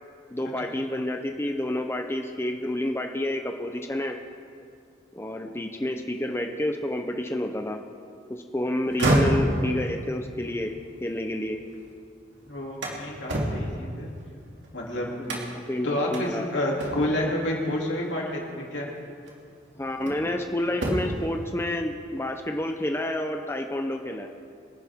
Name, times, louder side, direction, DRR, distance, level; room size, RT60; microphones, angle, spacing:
voice 1, 0.3-4.2 5.1-7.8 8.3-10.7 11.0-11.6 15.2-16.5 19.8-24.3, left 1 dB, 15° left, 4 dB, 0.6 m, -29 dB
sound 1, 8.8-11.9 12.3-14.7 15.2-15.7 16.1-16.3 16.8-17.3 18.5-18.7 19.3-20.4 20.7-21.3, right 1 dB, 75° right, 2.5 m, -28 dB
voice 2, 12.5-14.1 14.7-15.1 15.8-18.9, left 1 dB, 80° left, -2 dB, 2.9 m, -29 dB
24.0 x 10.5 x 3.6 m, 2.3 s
head